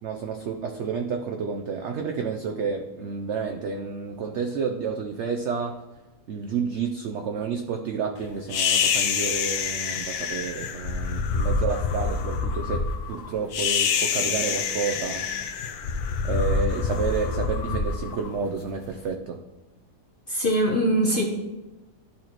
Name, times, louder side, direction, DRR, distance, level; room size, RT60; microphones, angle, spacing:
voice 1, 0.0-5.8 6.3-15.3 16.2-19.4, right 5 dB, 80° right, 4 dB, 0.6 m, -30 dB
sound 1, 8.5-18.9, left 5 dB, 70° left, 1.1 m, -26 dB
voice 2, 20.3-21.2, right 1 dB, 50° left, 1 dB, 0.6 m, -22 dB
12.0 x 4.3 x 3.0 m, 1.1 s
omnidirectional pair, 1.8 m